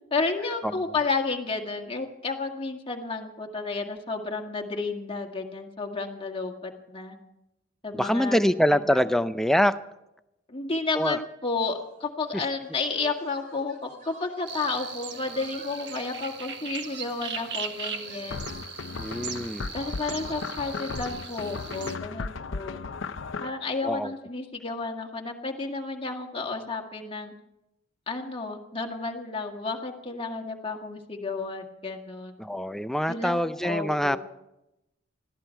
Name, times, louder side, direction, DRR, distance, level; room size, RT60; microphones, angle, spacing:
voice 1, 0.1-7.2 7.8-8.4 8.7-9.0 10.5-18.4 19.7-22.8 23.4-27.3 28.1-32.3 33.1-33.4 33.6-34.2, left 3 dB, 30° left, 3 dB, 1.9 m, -32 dB
voice 2, 7.9-9.7 11.0-11.2 19.0-19.7 23.8-24.1 32.4-34.2, equal, ahead, 11 dB, 0.5 m, -24 dB
sound 1, 11.7-19.8, right 1 dB, 45° right, 3.8 m, -52 dB
sound 2, 14.5-22.0, right 6 dB, 60° right, 1.5 m, -38 dB
sound 3, 18.3-23.5, left 4 dB, 75° left, 0.7 m, -36 dB
20.5 x 15.0 x 4.6 m, 0.89 s
head